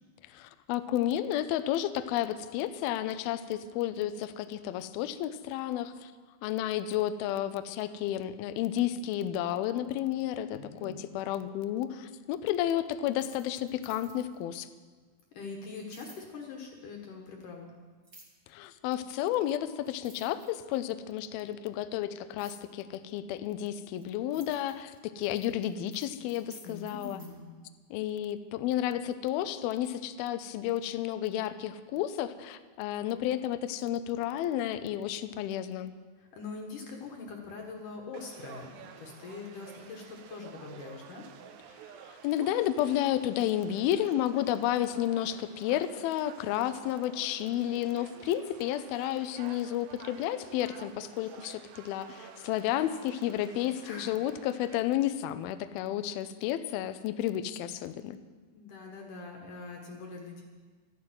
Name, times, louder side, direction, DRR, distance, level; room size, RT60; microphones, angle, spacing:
voice 1, 0.3-6.1 6.4-14.7 18.5-27.2 27.9-35.9 42.2-58.2, left 12 dB, 80° left, 11 dB, 2.2 m, -31 dB
voice 2, 10.5-11.0 15.3-17.7 26.6-27.5 36.2-41.2 53.8-54.2 58.5-60.4, left 4 dB, 60° left, 1 dB, 2.6 m, -43 dB
sound 1, 13.1-14.4 15.9-16.2 18.0-18.5 19.4-19.5 19.8-20.9 22.4-22.6 23.5-27.3, right 2 dB, 30° right, 1.8 m, -55 dB
Conversation / Crowd, 38.1-54.8, right 8 dB, 80° right, 2.8 m, -51 dB
13.5 x 11.0 x 7.7 m, 1.4 s
omnidirectional pair, 5.1 m